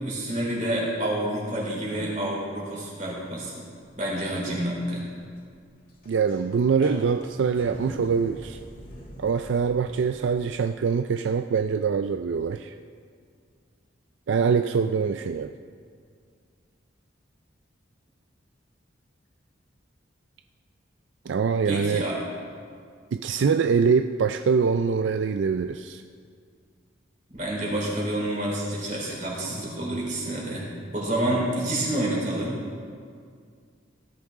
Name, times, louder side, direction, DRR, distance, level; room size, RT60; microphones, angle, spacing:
voice 1, 0.0-3.6 4.0-5.0 21.6-22.2 27.4-30.6 30.9-32.6, right 1 dB, 40° right, -3 dB, 3.9 m, -28 dB
sound 1, 3.8-10.3, left 1 dB, 45° left, 2.0 m, -43 dB
voice 2, 6.1-8.6 9.2-12.8 14.3-15.5 21.3-22.1 23.1-26.0, right 5 dB, 75° right, 8 dB, 0.4 m, -24 dB
18.0 x 13.0 x 3.7 m, 2.1 s
head